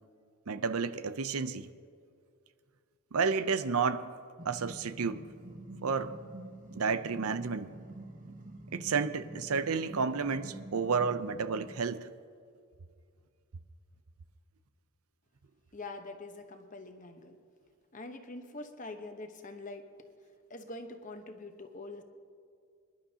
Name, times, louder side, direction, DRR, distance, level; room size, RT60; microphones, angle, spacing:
voice 1, 0.5-1.7 3.1-4.1 4.4-5.3 5.8-6.2 6.7-7.7 8.7-12.1, right 5 dB, 80° right, 12 dB, 0.6 m, -31 dB
sound 1, 4.4-11.8, right 1 dB, 35° right, 1.0 m, -47 dB
voice 2, 15.7-17.3 17.9-19.9 20.5-22.0, left 2 dB, 35° left, 6 dB, 1.0 m, -44 dB
25.5 x 11.5 x 2.8 m, 2.2 s
head